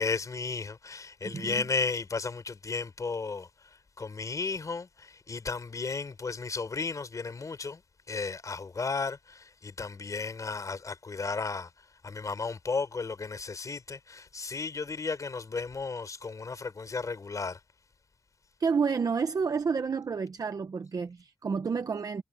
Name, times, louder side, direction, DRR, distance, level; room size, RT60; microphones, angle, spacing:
voice 1, 0.0-7.8 8.1-11.7 12.0-17.6, left 4 dB, 55° left, 4.5 m, -34 dB
voice 2, 1.2-1.6 18.6-22.2, right 5 dB, 65° right, 0.8 m, -30 dB
wide cardioid pair, 110°, 7 cm